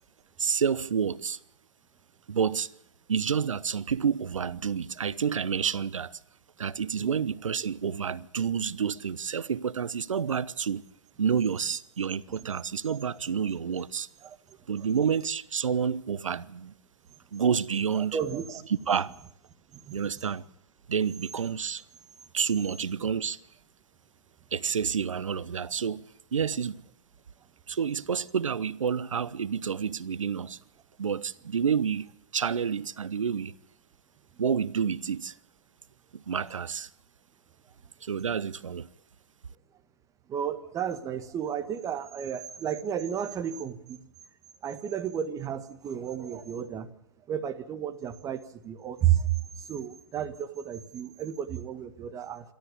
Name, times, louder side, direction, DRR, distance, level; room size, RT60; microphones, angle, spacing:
voice 1, 0.4-1.4 2.3-2.7 3.1-6.2 6.6-10.8 11.2-14.1 14.7-16.7 17.3-18.2 18.7-19.2 19.9-20.4 20.9-21.8 22.3-23.4 24.5-26.0 26.3-26.8 27.7-30.6 31.0-33.6 34.4-35.3 36.1-36.9 38.0-38.9, right 7 dB, 80° right, 0.9 m, -29 dB
voice 2, 17.9-18.6 19.9-20.0 40.3-44.0 44.6-46.9 47.3-52.5, right 9 dB, 20° right, 1.7 m, -32 dB
27.5 x 13.0 x 8.4 m
hypercardioid pair, 130°, 16 cm